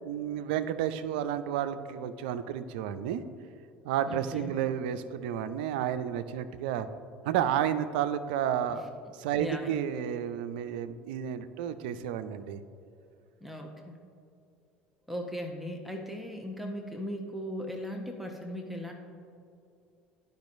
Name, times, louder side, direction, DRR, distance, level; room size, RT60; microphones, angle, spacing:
voice 1, 0.0-3.2 3.8-6.9 7.2-8.9 9.2-12.6, right 10 dB, 70° right, 12 dB, 0.4 m, -31 dB
voice 2, 4.1-4.5 9.4-9.8 13.4-13.9 15.1-18.9, equal, ahead, 1 dB, 0.9 m, -38 dB
11.5 x 5.2 x 2.6 m, 2.5 s
figure-of-eight pair, 65°, 5 cm